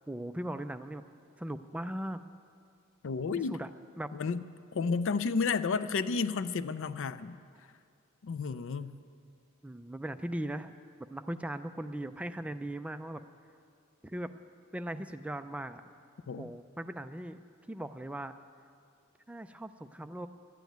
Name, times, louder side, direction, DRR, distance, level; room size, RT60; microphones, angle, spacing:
voice 1, 0.1-1.0 1.4-2.2 3.4-3.7 4.0-4.1 9.6-10.8 11.1-13.2 14.0-14.3 14.7-15.8 16.4-18.3 19.3-20.3, right 1 dB, 5° right, 9 dB, 0.3 m, -39 dB
voice 2, 3.0-3.6 4.1-4.4 4.7-7.4 8.2-9.0 16.3-16.5, left 5 dB, 65° left, 14 dB, 0.4 m, -31 dB
12.0 x 9.2 x 9.2 m, 2.3 s
head